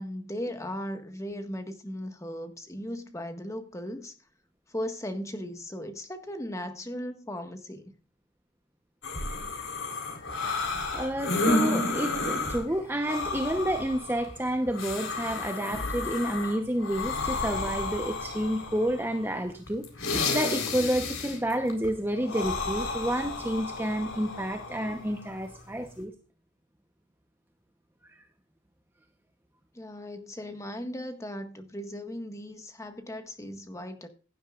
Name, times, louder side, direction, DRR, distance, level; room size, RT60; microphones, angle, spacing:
voice 1, 0.0-4.1 4.7-7.9 29.7-34.1, equal, 15° left, 1.6 m, -37 dB
A Man's Deep Breathing, 9.0-26.0, left 3 dB, 80° left, 4.1 m, -32 dB
voice 2, 10.9-26.1, right 1 dB, 10° right, 0.9 m, -30 dB
16.5 x 11.0 x 2.5 m
head